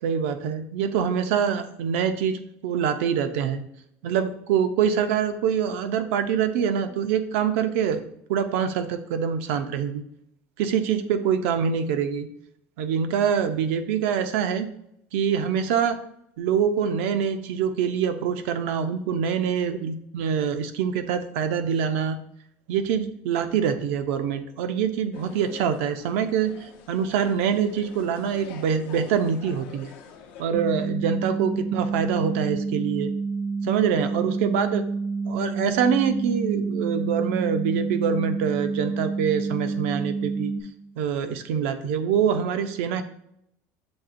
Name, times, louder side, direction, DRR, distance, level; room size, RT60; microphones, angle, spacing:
voice 1, 0.0-3.6 4.0-10.0 10.6-12.3 12.8-14.7 15.1-16.0 16.4-22.2 22.7-29.9 30.4-33.1 33.6-34.8 35.3-40.5 41.0-43.0, right 7 dB, 90° right, 8 dB, 0.5 m, -25 dB
sound 1, 25.1-30.4, left 6 dB, 80° left, 0.7 m, -45 dB
sound 2, 30.5-40.6, right 4 dB, 35° right, 0.5 m, -28 dB
7.0 x 2.8 x 2.5 m, 0.74 s
cardioid pair, 150°, 7 cm